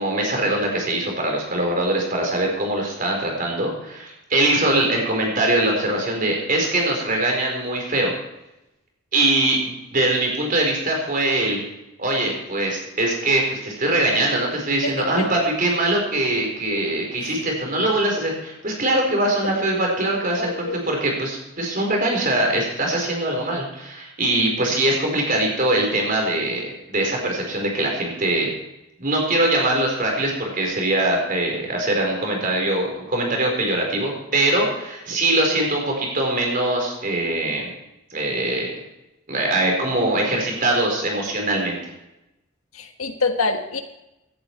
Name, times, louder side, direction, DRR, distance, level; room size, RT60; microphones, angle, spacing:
voice 1, 0.0-8.1 9.1-11.6 12.0-28.5 29.0-37.7 38.1-38.7 39.3-41.8, right 1 dB, 40° right, 1 dB, 4.3 m, -22 dB
voice 2, 20.4-20.8 42.7-43.8, left 3 dB, 80° left, 5 dB, 1.5 m, -25 dB
17.0 x 11.0 x 4.6 m, 0.92 s
head